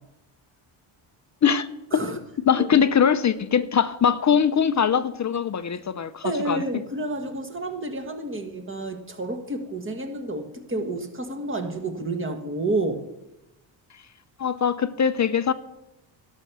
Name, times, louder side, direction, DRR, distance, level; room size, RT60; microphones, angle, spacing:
voice 1, 1.9-2.2 2.6-2.8 6.2-13.0, right 2 dB, 25° right, 1.7 m, -30 dB
voice 2, 2.5-6.6 14.4-15.5, left 7 dB, 35° left, 0.6 m, -22 dB
12.0 x 6.2 x 6.8 m
cardioid pair, 80°, 49 cm